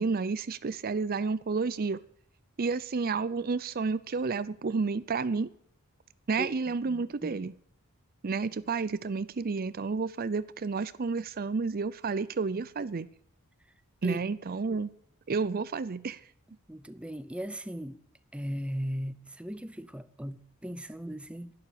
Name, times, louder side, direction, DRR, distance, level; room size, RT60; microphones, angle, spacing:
voice 1, 0.0-2.0 2.6-5.5 6.3-7.6 8.2-13.1 14.0-14.9 15.3-16.2, right 4 dB, 40° right, 0.5 m, -31 dB
voice 2, 6.9-7.4 14.0-14.2 16.7-18.0 18.3-21.5, equal, 5° right, 0.7 m, -37 dB
11.5 x 11.5 x 8.5 m
head